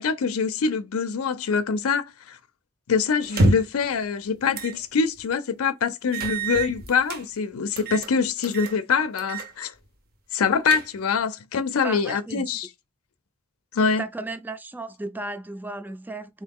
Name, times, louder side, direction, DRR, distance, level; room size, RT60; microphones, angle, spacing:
voice 1, 0.0-2.4 2.9-9.7 10.3-12.7 13.7-14.0, left 5 dB, 85° left, 0.5 m, -24 dB
sound 1, 3.2-3.8 4.5-4.8 5.2-5.3 6.1-7.2 7.8-8.1 8.4-8.8 9.2-9.5 9.8-9.9 10.4-11.2, right 2 dB, 45° right, 0.8 m, -26 dB
voice 2, 11.8-12.7 14.0-16.4, right 2 dB, 10° right, 0.4 m, -35 dB
3.8 x 2.7 x 3.5 m
head